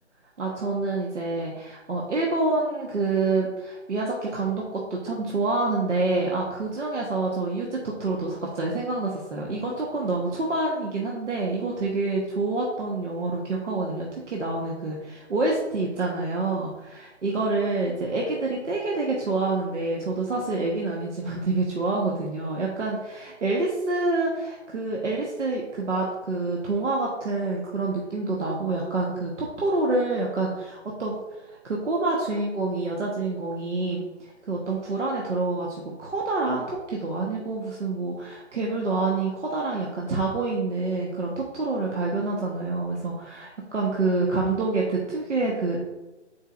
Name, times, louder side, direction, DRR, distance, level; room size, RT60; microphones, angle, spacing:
voice 1, 0.4-45.8, right 3 dB, 80° right, -3 dB, 1.4 m, -27 dB
9.0 x 4.7 x 2.5 m, 1.1 s
hypercardioid pair, 170°, 36 cm